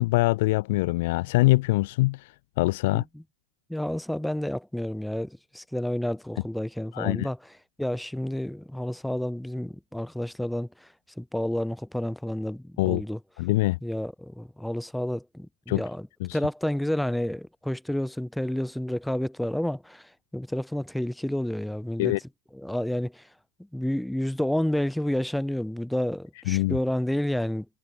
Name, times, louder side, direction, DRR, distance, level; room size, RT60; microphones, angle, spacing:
voice 1, 0.0-2.3 2.6-3.0 6.9-7.3 12.8-13.0 13.4-13.8 15.7-15.8 16.2-16.4 22.0-22.2 26.5-26.8, left 20 dB, 50° left, 1.0 m, -23 dB
voice 2, 2.9-3.2 3.7-7.4 7.8-10.9 11.2-13.2 13.8-16.1 16.3-22.1 22.5-23.3 23.7-27.7, left 1 dB, ahead, 4.3 m, -30 dB
figure-of-eight pair, 90°, 0 cm